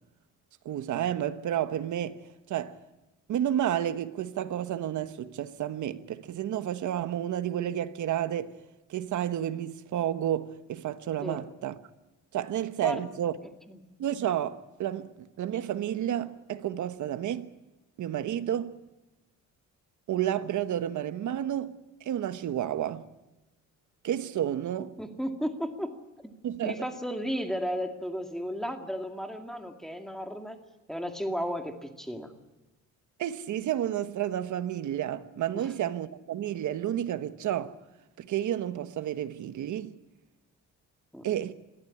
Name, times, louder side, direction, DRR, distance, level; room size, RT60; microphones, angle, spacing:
voice 1, 0.6-2.2 2.5-2.8 3.3-8.5 8.9-11.8 12.3-13.3 14.0-17.5 18.0-18.8 20.1-21.8 22.0-23.1 24.0-24.9 26.4-26.8 33.2-37.7 38.2-39.9 41.2-41.5, right 11 dB, 70° right, 1.2 m, -31 dB
voice 2, 25.0-26.0 26.2-26.3 26.6-30.6 30.9-32.3 35.5-35.7 41.1-41.3, equal, ahead, 2.2 m, -34 dB
22.0 x 14.5 x 9.8 m
cardioid pair, 120°, 31 cm